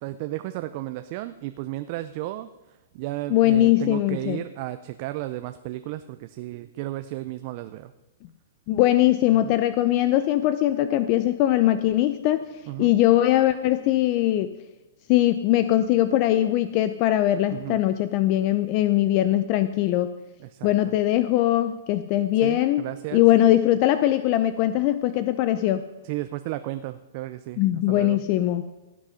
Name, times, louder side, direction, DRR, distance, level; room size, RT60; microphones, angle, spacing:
voice 1, 0.0-2.5 2.9-7.9 9.3-9.6 12.7-12.9 17.5-17.8 20.5-20.7 22.4-23.2 26.0-28.2, right 16 dB, 40° right, 10 dB, 0.5 m, -34 dB
voice 2, 3.3-4.4 8.7-12.5 12.8-14.6 15.1-20.1 20.6-22.8 23.1-25.8 27.6-28.7, left 14 dB, 40° left, 12 dB, 0.5 m, -21 dB
16.5 x 6.3 x 5.6 m, 1.1 s
hypercardioid pair, 150°, 0 cm